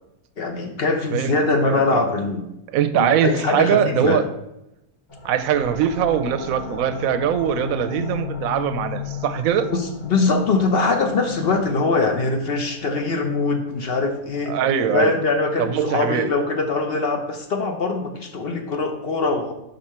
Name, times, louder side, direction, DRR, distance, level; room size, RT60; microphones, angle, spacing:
voice 1, 0.4-2.4 3.0-4.2 9.7-14.5 14.9-19.5, left 3 dB, 50° left, 5 dB, 0.8 m, -22 dB
voice 2, 1.6-2.0 2.7-4.2 5.2-9.7 14.5-15.1 15.6-16.3, right 9 dB, 75° right, 10 dB, 1.0 m, -22 dB
sound 1, 5.1-16.5, left 5 dB, 20° left, 1.0 m, -37 dB
5.5 x 5.4 x 4.2 m, 0.87 s
omnidirectional pair, 1.5 m